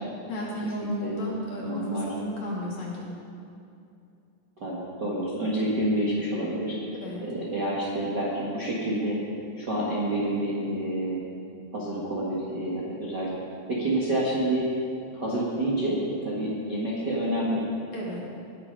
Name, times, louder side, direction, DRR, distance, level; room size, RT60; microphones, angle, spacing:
voice 1, 0.3-3.1 6.9-7.2 17.9-18.2, equal, 50° left, -4 dB, 3.4 m, -33 dB
voice 2, 0.8-1.2 1.6-2.1 4.6-6.7 7.2-9.2 9.5-11.2 11.7-13.3 13.7-14.7 15.1-17.6, right 1 dB, 40° right, -7 dB, 1.6 m, -28 dB
19.5 x 7.5 x 5.4 m, 2.6 s
omnidirectional pair, 4.3 m